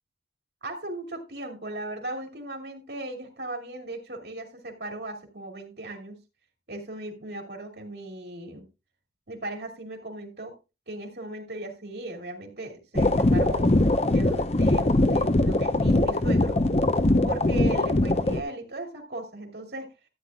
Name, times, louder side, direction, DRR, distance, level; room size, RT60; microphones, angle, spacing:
voice 1, 0.6-6.2 6.7-8.7 9.3-10.5 10.9-13.7 14.1-16.6 17.3-19.9, right 1 dB, 70° right, 2 dB, 2.4 m, -37 dB
sound 1, 12.9-18.4, left 1 dB, 35° left, 0.8 m, -22 dB
13.5 x 9.6 x 2.3 m, 0.27 s
head